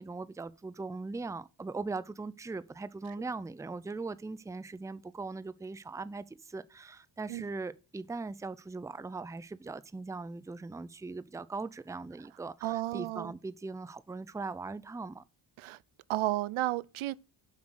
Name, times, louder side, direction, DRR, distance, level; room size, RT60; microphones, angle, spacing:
voice 1, 0.0-15.2, right 3 dB, 5° right, 0.5 m, -40 dB
voice 2, 12.6-13.3 15.6-15.8 16.1-17.1, right 16 dB, 75° right, 0.6 m, -32 dB
7.4 x 5.9 x 6.3 m
cardioid pair, 70°, 50 cm